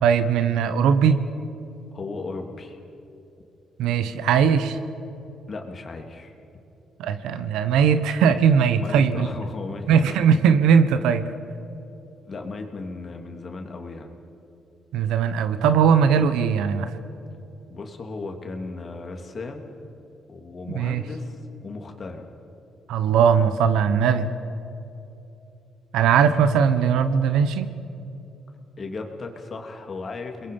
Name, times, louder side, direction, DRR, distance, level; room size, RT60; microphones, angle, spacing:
voice 1, 0.0-1.2 3.8-4.8 7.0-9.3 9.9-11.3 14.9-17.0 20.7-21.0 22.9-24.3 25.9-27.7, right 7 dB, 90° right, 11 dB, 1.2 m, -19 dB
voice 2, 1.9-2.8 5.5-6.3 8.8-10.2 12.3-14.1 17.7-19.7 20.3-22.3 28.8-30.5, left 3 dB, 40° left, 4 dB, 3.0 m, -36 dB
29.5 x 21.5 x 5.6 m, 2.9 s
cardioid pair, 90°, 0 cm